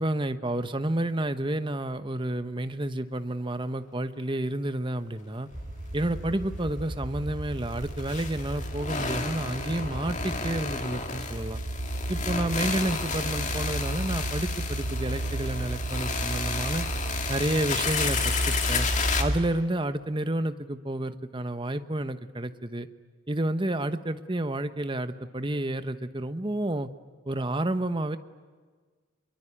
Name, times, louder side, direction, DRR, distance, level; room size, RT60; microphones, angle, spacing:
voice 1, 0.0-5.5 5.9-11.6 12.1-16.9 17.3-18.9 19.2-22.9 23.3-26.9 27.3-28.2, right 1 dB, 25° right, 10 dB, 1.0 m, -30 dB
sound 1, 5.5-5.7 5.9-6.0 7.6-19.2, left 5 dB, 35° left, 2.2 m, -32 dB
sound 2, 5.5-19.4, right 1 dB, 40° right, 2.5 m, -33 dB
26.0 x 23.0 x 9.9 m, 1.5 s
head